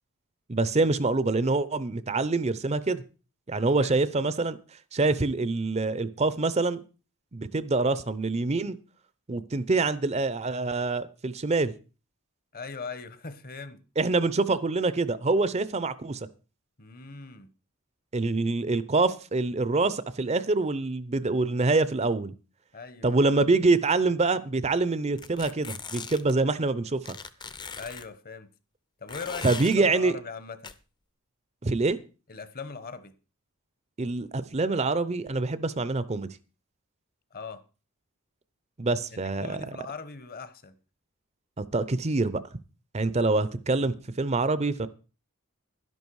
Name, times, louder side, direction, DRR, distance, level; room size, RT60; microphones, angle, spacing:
voice 1, 0.5-3.0 3.5-4.6 4.9-6.8 7.3-8.8 9.3-11.7 14.0-16.3 18.1-22.3 23.0-27.2 29.4-30.2 31.6-32.0 34.0-36.3 38.8-39.6 41.6-42.4 42.9-44.9, right 3 dB, 30° right, 0.6 m, -25 dB
voice 2, 12.5-13.8 16.8-17.5 22.7-23.2 27.8-28.5 29.0-29.5 29.8-30.7 32.3-33.1 37.3-37.6 39.1-40.7, left 4 dB, 40° left, 1.0 m, -40 dB
sound 1, 25.2-26.3 27.1-28.1 29.1-29.8 30.6-30.7, left 5 dB, 20° left, 0.6 m, -39 dB
12.0 x 11.0 x 4.7 m
head